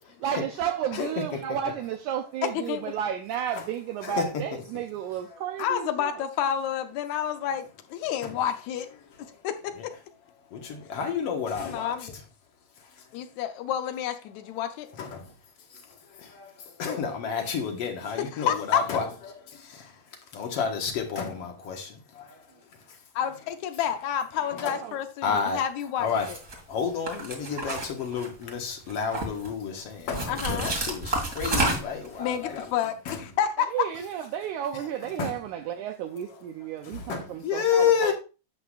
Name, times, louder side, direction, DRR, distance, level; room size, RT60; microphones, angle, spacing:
voice 1, 0.2-6.3 24.6-25.0 33.7-38.1, right 9 dB, 80° right, 1.8 m, -32 dB
voice 2, 2.4-2.8 5.6-8.9 9.4-9.9 11.6-12.1 13.1-14.9 18.3-18.8 23.1-26.4 30.3-30.7 32.2-33.7, left 9 dB, 75° left, 1.8 m, -29 dB
voice 3, 10.5-12.1 13.0-13.1 15.0-15.3 15.7-20.0 20.3-22.4 22.9-23.0 24.5-24.8 25.2-25.6 26.0-26.3 26.7-32.7 33.1-33.2 35.2-35.4 36.8-38.1, left 7 dB, 55° left, 2.0 m, -30 dB
sound 1, 26.2-26.5 27.1-28.5 28.9-29.5 30.1-32.1, right 2 dB, 30° right, 2.1 m, -29 dB
11.5 x 8.0 x 2.5 m
omnidirectional pair, 4.0 m